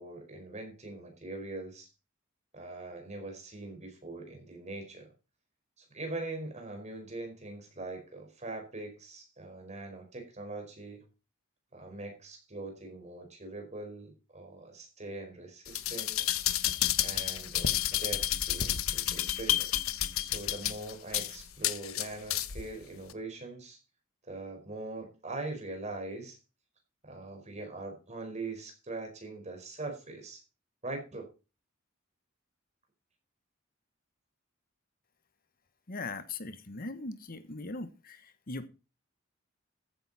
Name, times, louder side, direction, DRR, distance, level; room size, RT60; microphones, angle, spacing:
voice 1, 0.0-1.9 2.5-5.1 5.8-11.0 11.7-16.2 17.0-19.7 20.2-23.8 24.2-26.4 27.0-30.4 30.8-31.3, right 2 dB, 35° right, 4 dB, 4.8 m, -42 dB
sound 1, 15.7-22.7 23.1-23.2, left 12 dB, 85° left, 1.0 m, -30 dB
voice 2, 35.9-38.7, left 3 dB, 45° left, 12 dB, 1.2 m, -40 dB
14.5 x 9.5 x 4.2 m, 0.32 s
head